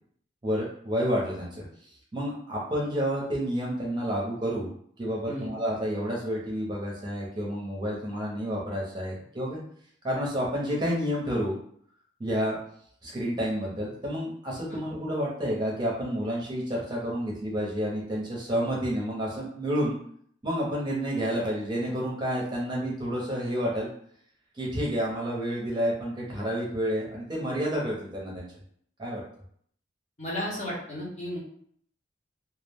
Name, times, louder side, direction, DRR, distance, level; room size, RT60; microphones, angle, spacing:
voice 1, 0.4-1.6 2.1-4.7 5.0-9.6 10.0-11.6 12.2-12.6 13.0-20.0 20.4-23.9 24.6-28.5 29.0-29.2, equal, 25° right, -4 dB, 0.5 m, -29 dB
voice 2, 30.2-31.4, left 1 dB, 35° left, -4 dB, 0.8 m, -33 dB
2.2 x 2.0 x 3.3 m, 0.63 s
head